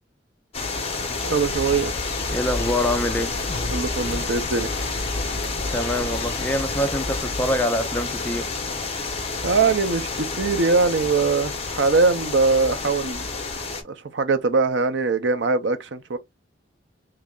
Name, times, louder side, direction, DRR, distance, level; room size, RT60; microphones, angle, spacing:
sound 1, 0.5-13.8, left 3 dB, 35° left, 0.9 m, -29 dB
voice 1, 1.2-1.9 3.7-4.7 9.4-13.3 13.8-16.2, right 4 dB, 75° right, 0.6 m, -22 dB
sound 2, 1.4-7.6, left 1 dB, 60° left, 1.0 m, -33 dB
voice 2, 2.3-3.4 5.7-8.5, left 1 dB, 10° left, 0.4 m, -25 dB
3.2 x 2.4 x 3.6 m
head